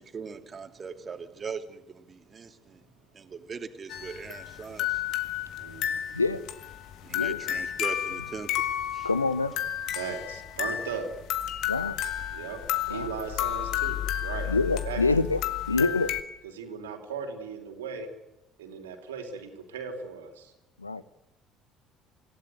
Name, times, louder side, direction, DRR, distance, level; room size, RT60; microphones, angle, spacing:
voice 1, 0.0-2.8 3.1-4.9 7.0-8.5 8.9-9.1, right 5 dB, 30° right, 2.7 m, -40 dB
sound 1, 3.9-16.2, left 11 dB, 55° left, 1.8 m, -32 dB
voice 2, 5.6-6.0 9.9-11.1 12.3-12.6 12.9-15.2 16.5-18.1 18.6-20.5, right 6 dB, 70° right, 3.8 m, -37 dB
voice 3, 9.0-9.5 11.7-11.9 12.9-13.1 14.5-15.4 15.7-16.1 20.8-21.0, left 3 dB, 85° left, 0.8 m, -26 dB
26.5 x 16.5 x 9.4 m
figure-of-eight pair, 55°, 0 cm